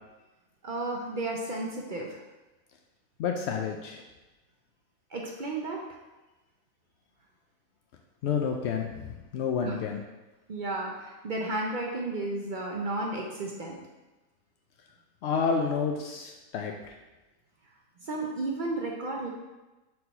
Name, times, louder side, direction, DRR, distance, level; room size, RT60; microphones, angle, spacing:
voice 1, 0.6-2.2 5.1-5.8 9.6-9.8 10.5-13.8 18.0-19.3, right 2 dB, 65° right, -1 dB, 0.5 m, -33 dB
voice 2, 3.2-4.0 8.2-10.0 15.2-16.9, left 6 dB, 80° left, 2 dB, 0.6 m, -30 dB
4.4 x 4.2 x 5.4 m, 1.1 s
omnidirectional pair, 1.7 m